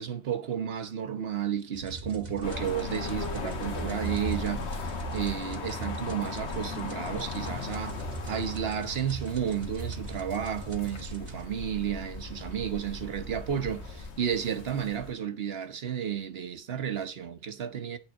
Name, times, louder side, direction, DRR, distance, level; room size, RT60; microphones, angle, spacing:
voice 1, 0.0-8.0 8.3-18.0, right 8 dB, 65° right, 1.2 m, -32 dB
sound 1, 1.7-11.5, right 3 dB, 40° right, 1.2 m, -40 dB
sound 2, 2.4-15.1, left 4 dB, 80° left, 1.5 m, -39 dB
sound 3, 3.1-14.1, left 1 dB, 40° left, 1.7 m, -46 dB
8.8 x 4.0 x 7.0 m
omnidirectional pair, 1.1 m